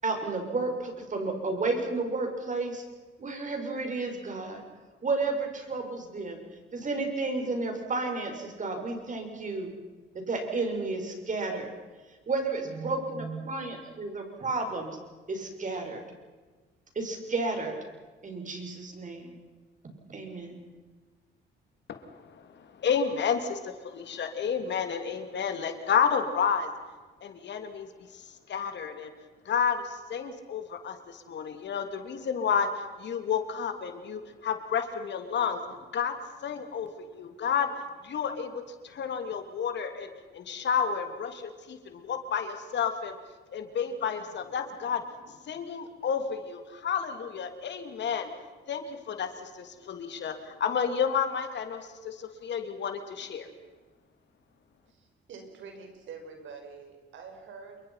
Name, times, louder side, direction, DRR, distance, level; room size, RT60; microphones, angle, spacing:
voice 1, 0.0-2.8 3.2-4.6 5.0-6.4 6.7-9.7 10.1-11.7 12.3-15.0 15.3-16.0 16.9-17.8 18.2-19.4 20.1-20.7, right 3 dB, 40° right, 4 dB, 6.7 m, -32 dB
voice 2, 21.9-26.7 27.2-27.9 28.1-29.1 29.4-35.6 35.9-36.1 36.4-37.7 38.0-38.5 38.8-43.2 43.5-48.3 48.7-53.5, left 7 dB, 65° left, 7 dB, 3.3 m, -31 dB
voice 3, 54.9-57.8, right 5 dB, 75° right, 4 dB, 5.9 m, -46 dB
28.0 x 23.0 x 6.0 m, 1.3 s
cardioid pair, 90°, 20 cm